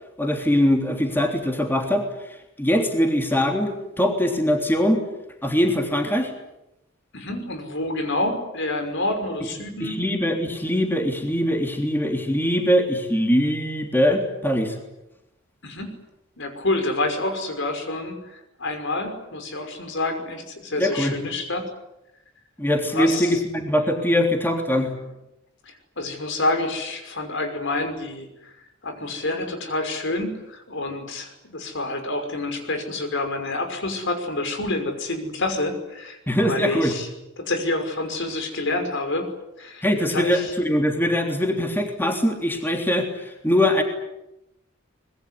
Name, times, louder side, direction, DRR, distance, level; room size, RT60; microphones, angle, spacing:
voice 1, 0.2-5.0 5.4-6.3 9.8-14.8 20.8-21.2 22.6-24.9 36.3-36.9 39.8-43.8, equal, 10° left, 3 dB, 3.4 m, -22 dB
voice 2, 7.1-10.0 15.6-15.9 16.4-21.6 22.8-23.4 25.6-28.5 28.8-37.1 37.4-39.3 39.6-40.5, left 2 dB, 65° left, 7 dB, 5.8 m, -28 dB
25.0 x 21.5 x 10.0 m, 0.91 s
head